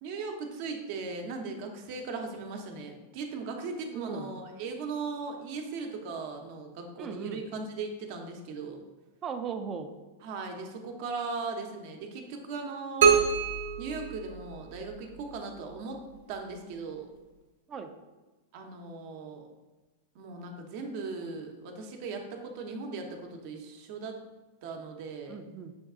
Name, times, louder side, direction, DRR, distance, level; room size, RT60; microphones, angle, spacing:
voice 1, 0.0-8.8 10.2-13.4 13.8-16.0 16.3-17.1 18.5-19.5 20.1-24.2 24.6-25.4, right 4 dB, 55° right, 3 dB, 0.8 m, -38 dB
voice 2, 3.9-4.3 7.0-7.4 9.2-9.9 17.7-17.9 25.3-25.7, right 6 dB, 30° right, 7 dB, 0.5 m, -37 dB
sound 1, 13.0-14.9, right 6 dB, 90° right, 0.8 m, -25 dB
6.2 x 2.3 x 3.6 m, 1.2 s
hypercardioid pair, 120°, 0 cm